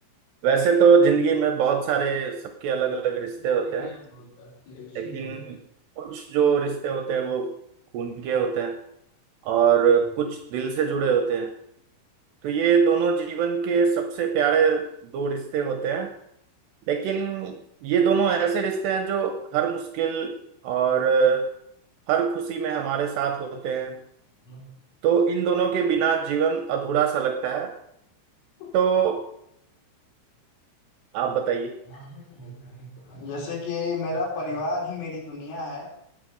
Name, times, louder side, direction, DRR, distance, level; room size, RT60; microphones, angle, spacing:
voice 1, 0.4-3.9 5.0-5.6 6.0-7.5 7.9-8.8 9.4-11.5 12.4-16.1 16.9-20.4 20.6-21.5 22.1-24.0 25.0-27.7 28.7-29.3 31.1-31.8, right 6 dB, 75° right, 6 dB, 2.6 m, -23 dB
voice 2, 3.3-5.5 24.4-24.7 28.6-28.8 31.9-35.9, left 3 dB, 80° left, -2 dB, 6.7 m, -34 dB
19.0 x 8.0 x 5.2 m, 0.74 s
omnidirectional pair, 5.8 m